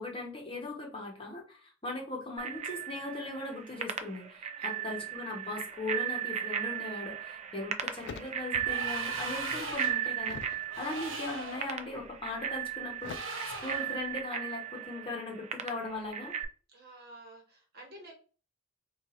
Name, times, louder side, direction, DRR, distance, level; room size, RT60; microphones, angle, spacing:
voice 1, 0.0-16.3, left 2 dB, 25° left, 0 dB, 1.0 m, -39 dB
Bicycle bell, 2.4-16.4, right 9 dB, 35° right, 0.3 m, -37 dB
voice 2, 4.6-5.2 16.7-18.1, right 1 dB, 50° right, 0 dB, 1.2 m, -51 dB
sound 1, 7.0-7.2 7.6-9.0 9.3-10.7 11.3-11.7 13.0-13.2, left 6 dB, 60° left, 0.3 m, -46 dB
sound 2, 8.6-10.1 10.7-11.7 13.0-14.0, right 2 dB, 75° right, 1.0 m, -39 dB
4.3 x 2.4 x 2.9 m, 0.37 s
head